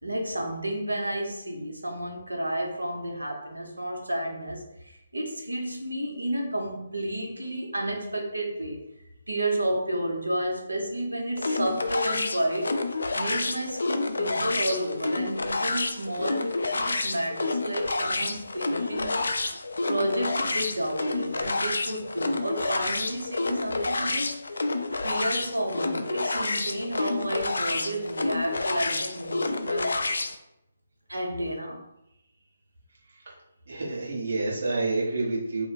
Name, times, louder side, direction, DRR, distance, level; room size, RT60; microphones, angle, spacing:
voice 1, 0.0-8.8 9.3-12.8 13.1-19.3 19.8-24.4 24.9-29.9 31.1-31.8, right 1 dB, 90° right, 1 dB, 0.8 m, -31 dB
sound 1, 11.4-30.4, left 3 dB, 75° left, 0.3 m, -29 dB
voice 2, 33.7-35.7, right 3 dB, 60° right, -5 dB, 1.3 m, -28 dB
3.0 x 2.1 x 4.0 m, 0.85 s
figure-of-eight pair, 145°, 0 cm